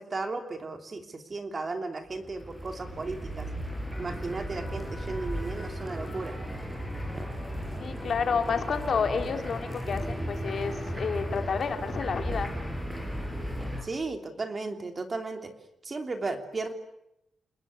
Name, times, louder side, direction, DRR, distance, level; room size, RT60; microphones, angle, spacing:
voice 1, 0.0-3.5 4.0-6.4 13.8-15.5 15.8-16.7, right 3 dB, 25° right, 6 dB, 3.1 m, -35 dB
sound 1, 2.1-13.8, equal, 5° right, 5.4 m, -35 dB
voice 2, 7.8-12.5, left 6 dB, 45° left, 6 dB, 3.3 m, -30 dB
30.0 x 20.0 x 9.7 m, 0.84 s
wide cardioid pair, 165°, 0 cm